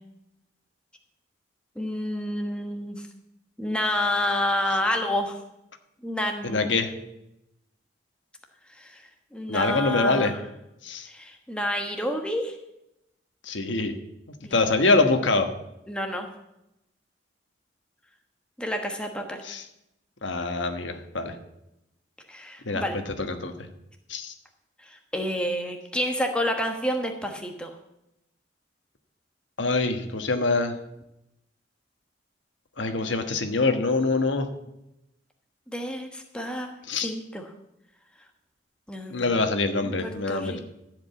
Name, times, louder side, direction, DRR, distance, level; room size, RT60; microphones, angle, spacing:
voice 1, 1.8-3.0 3.6-5.4 6.0-6.7 8.8-9.0 9.3-10.3 11.1-12.6 14.4-14.6 15.9-16.3 18.6-19.4 22.3-23.0 25.1-27.7 35.7-36.8 37.0-37.4 38.9-39.3 40.0-40.6, left 1 dB, 5° left, 3 dB, 1.2 m, -29 dB
voice 2, 6.4-6.9 9.5-10.3 10.8-11.1 13.4-13.9 14.5-15.5 19.4-19.7 20.2-21.4 22.6-23.7 24.1-24.3 29.6-30.8 32.8-34.5 36.8-37.1 39.1-40.6, left 3 dB, 90° left, 7 dB, 1.4 m, -25 dB
14.0 x 5.2 x 8.3 m, 0.86 s
head